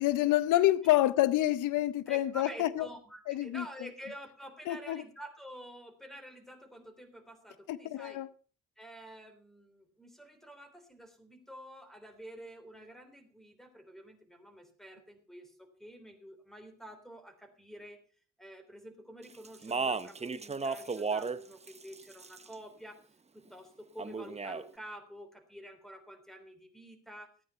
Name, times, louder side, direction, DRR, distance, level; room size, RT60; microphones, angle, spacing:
voice 1, 0.0-2.9 3.3-3.6 4.7-5.0 7.7-8.3, left 14 dB, 85° left, 0.7 m, -27 dB
voice 2, 2.1-8.2 8.8-18.0 18.4-23.0 23.3-27.3, equal, ahead, 3.5 m, -49 dB
Speech, 19.4-21.4 21.7-22.5 24.0-24.6, right 4 dB, 20° right, 0.9 m, -34 dB
15.0 x 9.2 x 5.7 m
cardioid pair, 90°, 30 cm